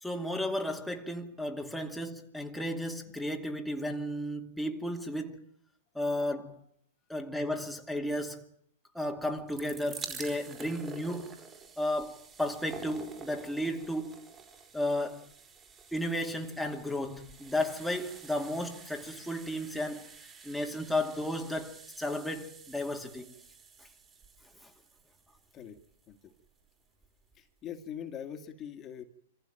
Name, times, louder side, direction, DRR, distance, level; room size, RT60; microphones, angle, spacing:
voice 1, 0.0-5.4 5.9-6.6 7.1-8.5 8.9-11.4 11.8-14.3 14.7-15.3 15.9-20.1 20.4-23.3 24.6-24.7, left 1 dB, ahead, 2.3 m, -34 dB
sound 1, 9.4-26.3 27.0-27.1 27.3-27.4, right 5 dB, 20° right, 4.6 m, -49 dB
voice 2, 27.4-29.0, left 9 dB, 25° left, 2.2 m, -42 dB
26.5 x 15.5 x 9.1 m
hypercardioid pair, 125°, 0 cm